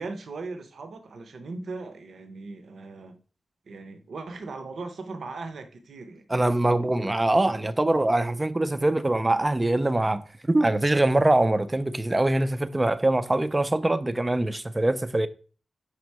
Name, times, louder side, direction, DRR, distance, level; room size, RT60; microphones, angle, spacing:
voice 1, 0.0-3.2 3.7-6.2, right 3 dB, 65° right, 0.7 m, -38 dB
voice 2, 6.3-15.3, right 2 dB, 15° right, 0.4 m, -23 dB
4.9 x 4.3 x 4.6 m
wide cardioid pair, 125°, 0 cm